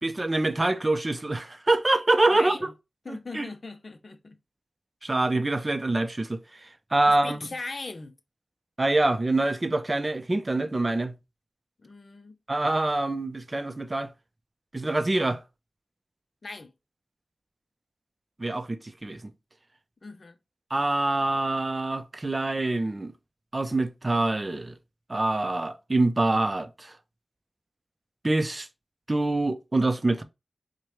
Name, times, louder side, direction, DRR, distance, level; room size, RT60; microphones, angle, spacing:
voice 1, 0.0-2.6 3.1-3.5 5.0-7.5 8.8-11.1 12.5-14.1 14.7-15.4 18.4-19.3 20.7-23.1 23.5-24.7 25.1-26.9 28.2-28.7 29.1-30.2, right 2 dB, 40° right, 0.5 m, -25 dB
voice 2, 2.3-2.7 3.0-4.4 7.1-8.2 11.8-12.4 16.4-16.7 20.0-20.4, left 3 dB, 60° left, 0.5 m, -39 dB
4.6 x 2.1 x 3.0 m
cardioid pair, 40°, 0 cm